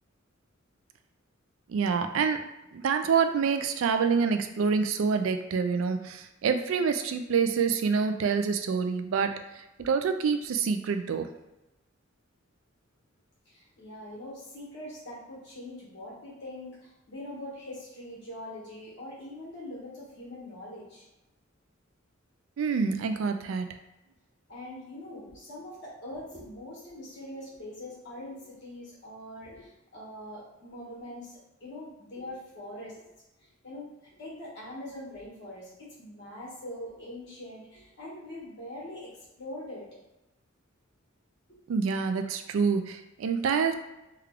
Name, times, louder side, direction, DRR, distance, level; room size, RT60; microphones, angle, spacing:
voice 1, 1.7-2.4 2.7-11.3 22.6-23.7 41.7-43.7, right 5 dB, 80° right, 7 dB, 0.3 m, -27 dB
voice 2, 13.5-21.0 24.5-33.0 33.4-33.9 34.2-39.1 39.4-39.9 41.5-41.6, left 1 dB, 60° left, -6 dB, 1.4 m, -43 dB
3.3 x 2.3 x 3.6 m, 0.97 s
head